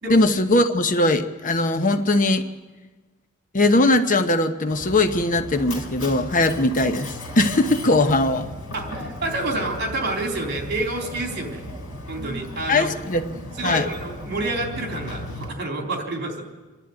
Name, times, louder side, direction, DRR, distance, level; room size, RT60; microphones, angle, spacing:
voice 1, 0.1-2.5 3.5-8.5 12.7-13.2 13.6-13.9, left 2 dB, 40° left, 9 dB, 0.9 m, -20 dB
Mechanisms, 4.7-15.5, left 1 dB, 75° left, 4.1 m, -36 dB
voice 2, 8.7-11.6 12.1-12.9 13.6-16.4, right 2 dB, 50° right, 2 dB, 3.6 m, -28 dB
26.5 x 11.5 x 9.4 m, 1.3 s
head